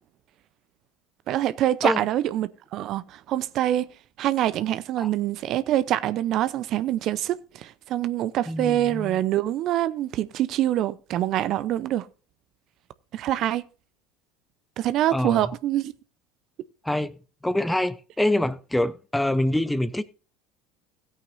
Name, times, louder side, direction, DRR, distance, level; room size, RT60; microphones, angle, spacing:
voice 1, 1.3-3.9 4.2-12.1 13.1-13.6 14.8-15.9, right 13 dB, 50° right, 0.7 m, -25 dB
voice 2, 8.5-9.2 15.1-15.5 16.8-17.2 17.4-20.0, left 1 dB, 5° left, 0.7 m, -25 dB
17.0 x 8.5 x 2.7 m
figure-of-eight pair, 70°, 0 cm